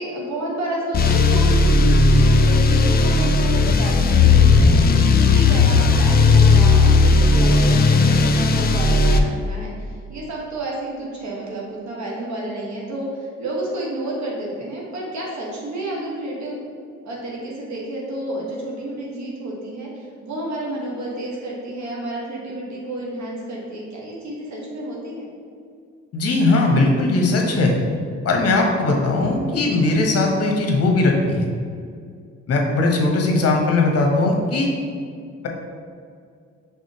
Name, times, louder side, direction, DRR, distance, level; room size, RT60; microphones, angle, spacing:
voice 1, 0.0-16.6 17.0-25.2, right 1 dB, 65° right, -3 dB, 1.3 m, -30 dB
sound 1, 0.9-9.2, left 3 dB, 35° left, 0.4 m, -15 dB
voice 2, 26.1-27.8 28.2-31.5 32.5-34.7, left 2 dB, 55° left, 0 dB, 0.9 m, -19 dB
4.9 x 3.4 x 2.8 m, 2.3 s
cardioid pair, 90°, 30 cm